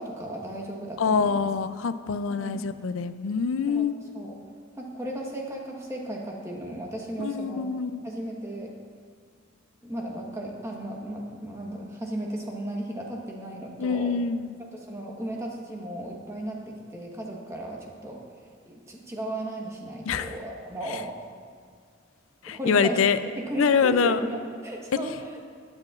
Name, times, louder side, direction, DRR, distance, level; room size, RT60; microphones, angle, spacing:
voice 1, 0.0-1.5 2.4-2.6 3.7-3.9 4.1-4.3 4.7-7.7 8.0-8.7 9.8-14.1 14.6-18.2 18.7-21.2 22.5-23.0 23.5-25.5, right 1 dB, 15° right, -1 dB, 1.2 m, -35 dB
voice 2, 1.0-3.9 7.2-8.0 13.8-14.6 20.1-20.3 22.4-23.2 23.6-24.2, left 6 dB, 85° left, 12 dB, 0.4 m, -25 dB
15.0 x 9.6 x 2.4 m, 2.1 s
head